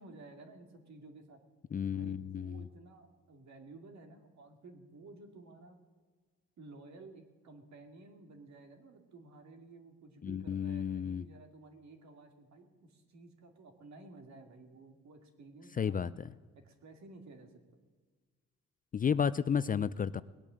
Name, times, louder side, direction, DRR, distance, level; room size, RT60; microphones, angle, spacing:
voice 1, 0.0-1.4 1.8-5.8 6.6-16.1 16.6-17.5, right 3 dB, 65° right, 5 dB, 2.4 m, -54 dB
voice 2, 1.7-2.6 10.2-11.2 15.8-16.3 18.9-20.2, left 7 dB, 30° left, 16 dB, 0.4 m, -32 dB
19.5 x 8.7 x 7.5 m, 1.5 s
cardioid pair, 90°, 30 cm